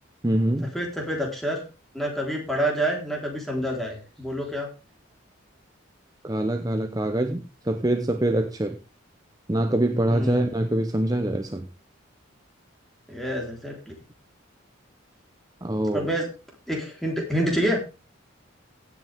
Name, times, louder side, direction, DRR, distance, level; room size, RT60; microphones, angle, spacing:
voice 1, 0.2-0.7 6.2-8.8 9.5-11.7 15.6-16.1, right 1 dB, 20° right, 0.8 m, -24 dB
voice 2, 0.7-1.6 1.9-4.7 10.1-10.5 13.1-13.9 15.9-16.3 16.7-17.8, right 1 dB, ahead, 3.8 m, -27 dB
16.5 x 8.5 x 3.5 m
head